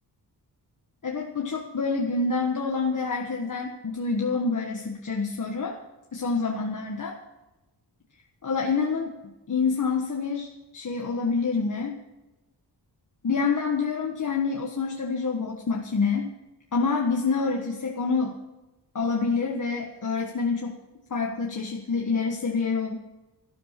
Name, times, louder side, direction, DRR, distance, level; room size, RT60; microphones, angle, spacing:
voice 1, 1.0-5.8 6.1-7.2 8.4-12.0 13.2-16.3 16.7-18.4 18.9-20.7 21.1-23.0, left 4 dB, 45° left, 0 dB, 1.4 m, -27 dB
13.5 x 12.5 x 5.9 m, 1.1 s
wide cardioid pair, 150°, 41 cm